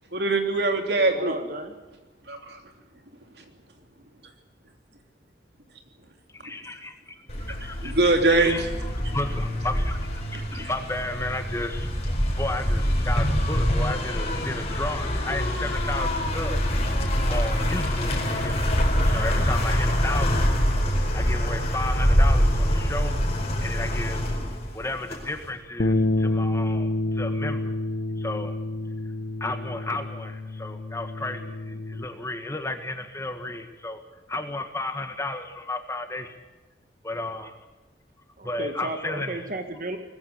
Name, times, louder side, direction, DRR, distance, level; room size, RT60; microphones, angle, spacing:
voice 1, 0.1-1.3 2.3-2.6 7.5-7.6 7.8-8.6 9.0-9.2 10.5-10.7, right 2 dB, 70° right, 5 dB, 3.2 m, -22 dB
voice 2, 1.0-1.7 38.4-40.0, right 1 dB, 50° right, 6 dB, 1.8 m, -34 dB
voice 3, 6.4-7.2 7.5-16.6 17.3-18.6 19.1-20.5 21.1-23.1 23.6-24.3 24.7-27.7 28.2-28.6 29.4-34.0 34.3-36.3 37.0-37.6 38.4-39.4, left 2 dB, 15° left, 7 dB, 1.7 m, -33 dB
sound 1, 7.3-25.5, equal, 35° left, 4.6 m, -25 dB
sound 2, 25.8-32.0, left 2 dB, 60° left, 0.8 m, -28 dB
20.0 x 15.5 x 9.7 m, 1.1 s
head